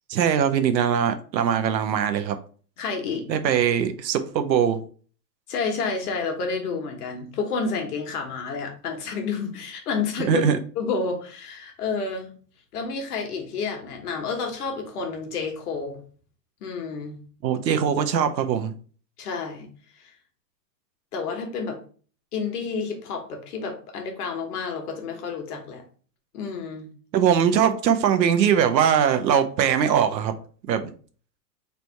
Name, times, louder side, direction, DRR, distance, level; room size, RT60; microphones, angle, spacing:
voice 1, 0.1-2.4 3.3-4.8 10.2-10.6 17.4-18.7 27.1-30.3 30.7-30.9, right 8 dB, 85° right, 9 dB, 0.8 m, -21 dB
voice 2, 2.8-3.3 5.5-10.4 10.8-12.3 12.7-16.0 16.6-17.2 19.2-19.7 20.0-20.1 21.1-21.8 22.3-25.8 26.3-26.9, left 4 dB, 65° left, 4 dB, 1.2 m, -30 dB
3.4 x 2.6 x 4.4 m, 0.41 s
hypercardioid pair, 145°, 50 cm